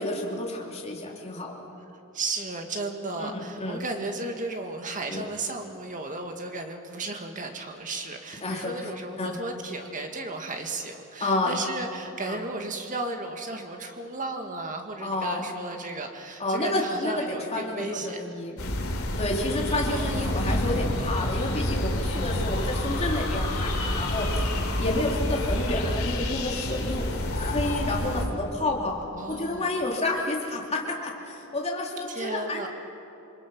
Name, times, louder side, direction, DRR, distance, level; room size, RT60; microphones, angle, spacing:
voice 1, 0.0-1.6 3.2-3.8 5.1-5.2 8.4-8.9 9.2-9.3 11.2-11.6 12.3-12.4 15.0-15.5 16.4-18.6 19.2-24.5 24.8-27.1 27.3-29.0 29.3-32.7, left 2 dB, 30° left, -2 dB, 2.8 m, -30 dB
voice 2, 2.1-18.2 19.9-20.4 24.7-24.9 29.1-29.8 32.1-32.7, right 2 dB, 35° right, 4 dB, 2.0 m, -34 dB
sound 1, 18.6-28.2, left 1 dB, 70° left, 3.2 m, -28 dB
27.5 x 22.0 x 6.2 m, 2.9 s
head